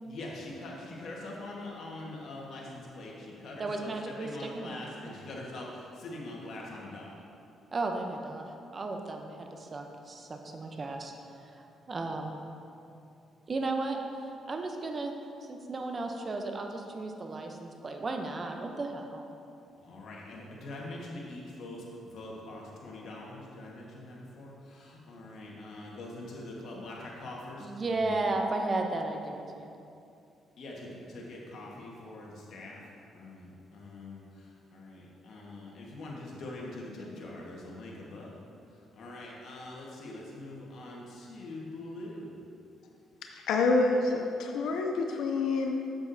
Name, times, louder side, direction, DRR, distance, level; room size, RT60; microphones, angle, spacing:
voice 1, 0.0-7.1 19.8-28.2 30.6-32.8 33.1-38.3 38.9-42.3, left 2 dB, 65° left, -3 dB, 1.5 m, -43 dB
voice 2, 3.6-5.1 7.7-8.4 8.7-11.1 11.9-12.4 13.5-14.0 14.5-15.1 15.5-19.3 27.6-29.7, right 2 dB, 35° right, 3 dB, 0.7 m, -34 dB
voice 3, 43.5-45.7, left 3 dB, 80° left, 3 dB, 0.5 m, -27 dB
8.0 x 7.0 x 2.7 m, 2.6 s
cardioid pair, 90°, 0 cm